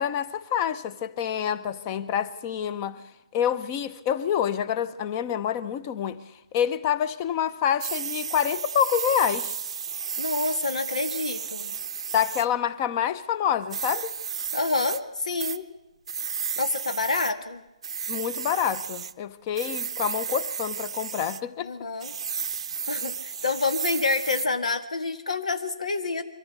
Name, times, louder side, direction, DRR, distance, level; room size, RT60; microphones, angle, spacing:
voice 1, 0.0-3.0 3.3-6.2 6.5-9.5 12.1-14.1 18.1-21.7 23.0-23.1, left 9 dB, 25° left, 0.9 m, -27 dB
sound 1, 7.8-12.5 13.7-15.0 15.4-15.6 16.1-17.3 17.8-19.1 19.6-21.4 22.0-24.5, right 7 dB, 60° right, 0.7 m, -33 dB
voice 2, 10.2-11.7 14.5-15.7 16.6-17.6 21.6-22.1 22.9-26.2, left 3 dB, 85° left, 1.8 m, -28 dB
23.5 x 14.5 x 8.2 m
hypercardioid pair, 155°, 4 cm